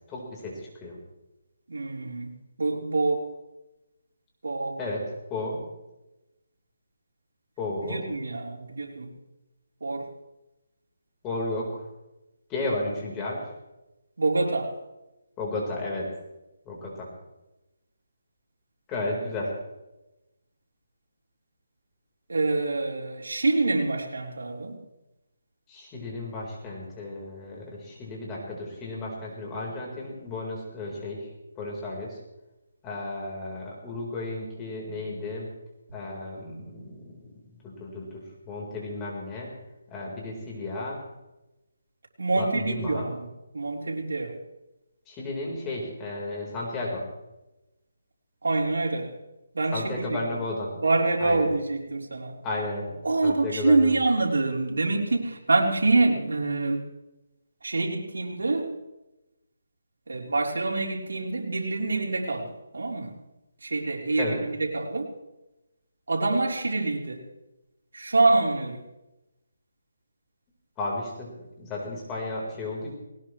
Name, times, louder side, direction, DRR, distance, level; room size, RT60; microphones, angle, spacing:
voice 1, 0.1-1.0 4.8-5.6 7.6-8.0 11.2-11.8 12.5-13.5 15.4-16.1 16.7-17.1 18.9-19.5 25.7-31.3 31.6-32.2 32.8-35.5 35.9-37.3 37.6-39.5 39.9-41.0 42.3-43.1 45.1-47.0 49.7-50.7 51.2-51.5 52.4-52.9 53.2-54.0 64.2-64.4 70.8-72.9, left 2 dB, 15° left, -3 dB, 4.1 m, -33 dB
voice 2, 1.7-2.3 2.6-3.3 4.4-4.8 7.8-9.1 9.8-10.1 14.2-14.7 22.3-24.8 42.2-43.2 43.5-44.4 48.4-49.1 49.5-50.2 50.7-52.3 53.0-56.8 57.6-58.7 60.1-62.5 62.7-63.2 63.6-65.1 66.1-67.2 67.9-68.8, right 3 dB, 80° right, -1 dB, 3.8 m, -26 dB
20.0 x 19.0 x 3.2 m, 0.98 s
hypercardioid pair, 160°, 0 cm